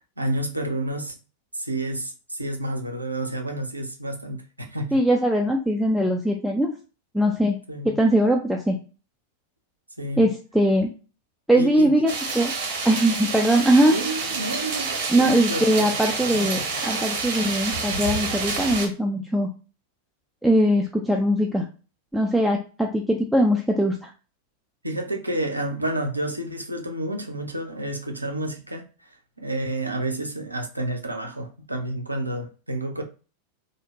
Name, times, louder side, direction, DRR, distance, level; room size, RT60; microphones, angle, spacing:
voice 1, 0.2-1.1 1.5-5.0 7.7-8.0 10.0-10.3 11.6-12.0 13.9-15.9 24.8-28.8 29.4-33.0, right 1 dB, 85° right, 0.5 m, -30 dB
voice 2, 4.9-6.7 7.1-7.6 7.8-8.8 10.2-10.9 11.5-12.5 12.8-14.0 15.1-19.5 20.4-21.7 22.1-24.1, right 1 dB, ahead, 0.4 m, -21 dB
sound 1, 12.1-18.9, right 4 dB, 55° right, 0.8 m, -28 dB
2.6 x 2.0 x 2.9 m
figure-of-eight pair, 90°, 0 cm